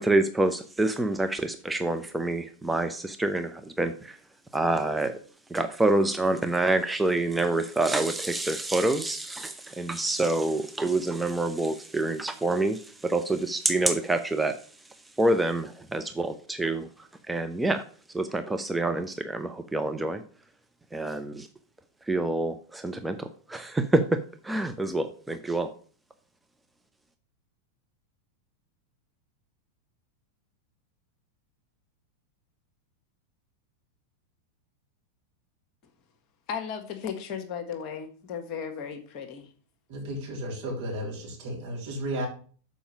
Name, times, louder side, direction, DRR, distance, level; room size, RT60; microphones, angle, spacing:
voice 1, 0.0-4.2 4.5-5.2 5.5-14.6 15.2-17.8 18.1-20.2 20.9-21.5 22.1-25.7, right 2 dB, 5° right, 0.6 m, -27 dB
voice 2, 36.5-39.5, left 7 dB, 40° left, 1.3 m, -35 dB
voice 3, 39.9-42.3, right 1 dB, 45° right, 3.5 m, -33 dB
7.1 x 5.0 x 6.9 m
figure-of-eight pair, 90°, 0 cm